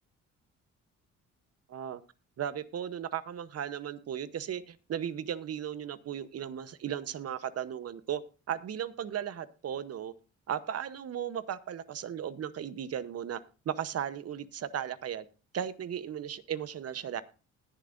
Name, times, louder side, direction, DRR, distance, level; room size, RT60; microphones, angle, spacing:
voice 1, 1.7-2.0 2.4-8.2 8.5-10.1 10.5-13.4 13.6-15.2 15.5-17.2, right 9 dB, 55° right, 14 dB, 0.9 m, -36 dB
20.0 x 7.0 x 2.6 m, 0.33 s
cardioid pair, 90°, 30 cm